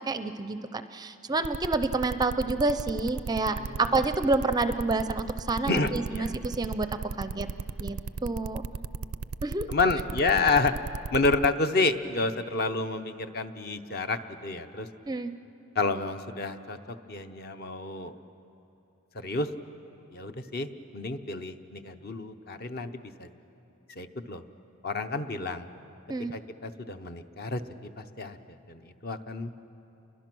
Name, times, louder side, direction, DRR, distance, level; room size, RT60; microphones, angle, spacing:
voice 1, 0.0-6.9 7.2-7.5 7.8-8.6 9.4-9.7 15.1-15.3 26.1-26.3, right 3 dB, 20° right, 10 dB, 0.5 m, -28 dB
sound 1, 1.4-11.5, right 4 dB, 85° right, 0.5 m, -35 dB
voice 2, 5.7-6.3 7.3-7.6 9.7-10.7 11.1-14.9 15.7-18.1 19.1-19.5 20.1-23.3 24.0-24.4 24.8-25.7 26.3-27.6 28.0-29.5, left 3 dB, 45° left, 8 dB, 0.8 m, -29 dB
29.5 x 22.5 x 6.2 m, 2.9 s
head